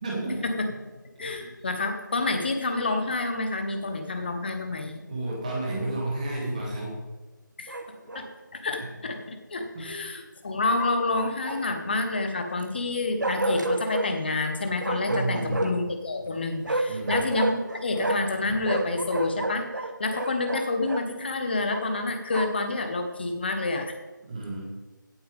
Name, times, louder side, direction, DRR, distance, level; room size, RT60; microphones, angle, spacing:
voice 1, 0.0-0.4 1.2-1.5 5.1-7.0 8.8-8.9 9.7-9.9 15.1-15.8 16.9-17.2 24.2-24.7, right 2 dB, 20° right, -2 dB, 2.1 m, -31 dB
voice 2, 1.2-5.0 7.6-8.2 8.5-23.9, left 2 dB, 30° left, 5 dB, 1.2 m, -28 dB
Bark, 7.7-8.3 10.8-11.9 13.2-14.1 14.8-15.9 16.6-18.4 18.6-21.1 21.7-22.7, right 2 dB, 65° right, 1.3 m, -31 dB
16.5 x 8.7 x 3.6 m, 1.2 s
figure-of-eight pair, 165°, 11 cm